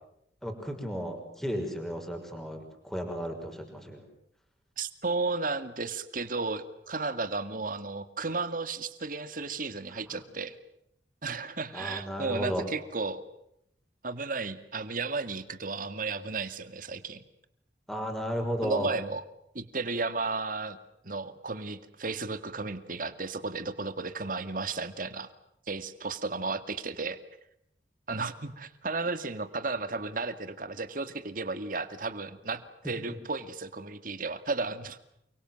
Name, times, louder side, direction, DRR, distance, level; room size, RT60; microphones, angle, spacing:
voice 1, 0.4-4.1 11.7-12.6 17.9-18.9, equal, ahead, 3 dB, 5.8 m, -34 dB
voice 2, 4.8-10.6 11.2-13.2 14.0-17.2 18.6-19.2 19.5-20.8 21.0-25.3 25.7-27.2 28.1-35.1, right 3 dB, 50° right, 11 dB, 2.2 m, -34 dB
29.5 x 24.0 x 7.8 m, 0.76 s
head